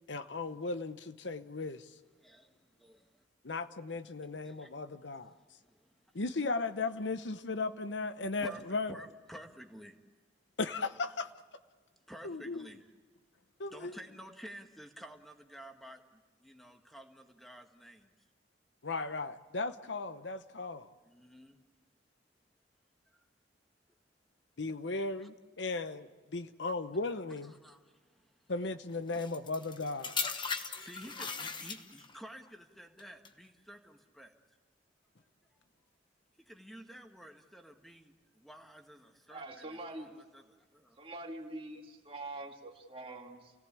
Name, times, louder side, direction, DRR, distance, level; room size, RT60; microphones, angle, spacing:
voice 1, 0.1-1.9 3.4-5.3 6.1-8.9 10.6-11.3 12.2-12.7 13.6-14.0 18.8-20.9 24.6-27.5 28.5-30.2, left 3 dB, 70° left, 0.9 m, -36 dB
voice 2, 2.2-3.2 4.4-4.7 5.4-5.9 8.4-10.0 12.1-12.9 13.7-18.1 21.0-21.6 24.9-25.3 27.4-28.5 30.5-34.3 36.4-41.0, equal, ahead, 1.8 m, -52 dB
sound 1, 29.1-32.2 33.0-33.3, left 5 dB, 25° left, 1.1 m, -38 dB
voice 3, 39.3-40.1 41.0-43.5, right 2 dB, 30° right, 2.4 m, -44 dB
29.5 x 17.5 x 8.7 m
head